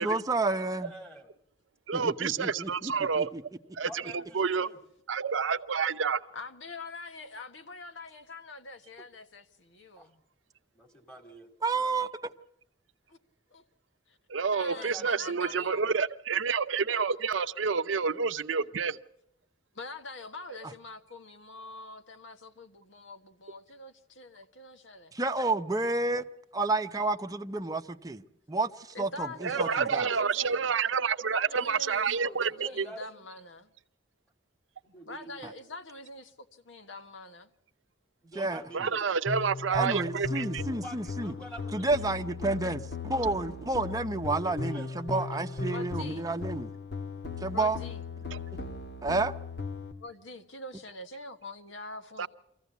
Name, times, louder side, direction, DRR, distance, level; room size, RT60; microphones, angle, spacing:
voice 1, 0.0-0.9 1.9-3.4 11.6-12.1 25.1-26.2 26.5-28.2 28.5-28.7 29.0-30.0 38.4-38.6 39.7-41.3 41.7-46.7 47.4-47.8 49.0-49.3, right 2 dB, 20° right, 0.8 m, -30 dB
voice 2, 0.8-1.3 3.8-4.8 10.0-10.1 10.7-11.5 14.6-15.8 29.4-29.9 32.1-33.2 34.8-35.6 38.2-39.0 40.6-42.1 44.3-45.7, right 1 dB, 5° left, 2.3 m, -48 dB
voice 3, 1.9-3.3 3.7-4.0 4.3-4.7 5.1-6.2 14.3-19.0 29.4-32.9 38.7-40.6 48.3-48.4 52.2-52.3, right 5 dB, 85° right, 0.7 m, -29 dB
voice 4, 6.3-10.2 13.1-13.2 13.5-13.6 14.1-14.2 14.5-15.8 19.7-25.1 28.9-30.7 31.2-33.7 35.1-37.5 45.6-46.3 47.5-48.1 50.0-52.3, left 2 dB, 80° left, 1.5 m, -44 dB
sound 1, 39.3-49.9, left 4 dB, 65° left, 1.5 m, -37 dB
24.5 x 15.0 x 8.3 m
head